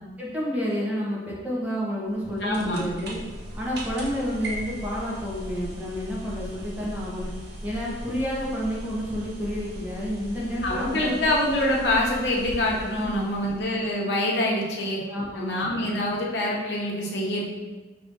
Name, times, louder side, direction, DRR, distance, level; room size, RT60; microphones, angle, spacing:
voice 1, 0.2-3.2 3.6-7.3 7.6-11.2 12.9-13.3 15.1-15.6, equal, 10° right, -6 dB, 0.9 m, -30 dB
sound 1, 2.1-13.9, equal, 70° right, 0.9 m, -38 dB
voice 2, 2.4-2.8 10.6-15.0 15.3-17.5, left 1 dB, 75° left, -3 dB, 0.9 m, -25 dB
5.7 x 3.4 x 2.7 m, 1.3 s
head